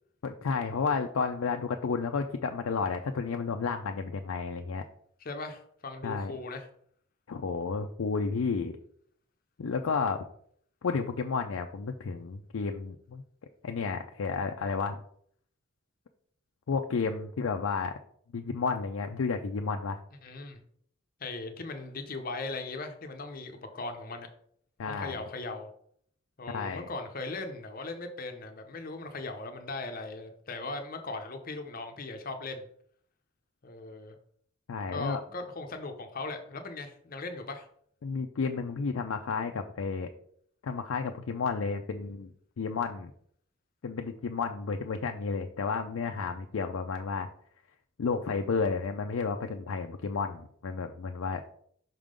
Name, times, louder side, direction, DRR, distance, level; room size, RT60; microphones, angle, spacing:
voice 1, 0.2-4.8 6.0-6.3 7.3-8.7 9.6-10.2 10.8-13.2 13.6-15.0 16.7-17.9 18.3-20.0 24.8-25.3 26.5-26.9 34.7-35.2 38.0-40.1 40.6-43.1 43.8-47.3 48.0-51.4, left 5 dB, 85° left, 4 dB, 0.4 m, -32 dB
voice 2, 5.2-6.7 20.2-20.6 21.2-24.3 24.9-25.7 26.4-32.7 33.6-34.1 34.9-37.7, left 3 dB, 45° left, 5 dB, 0.7 m, -38 dB
5.7 x 3.7 x 5.1 m, 0.63 s
head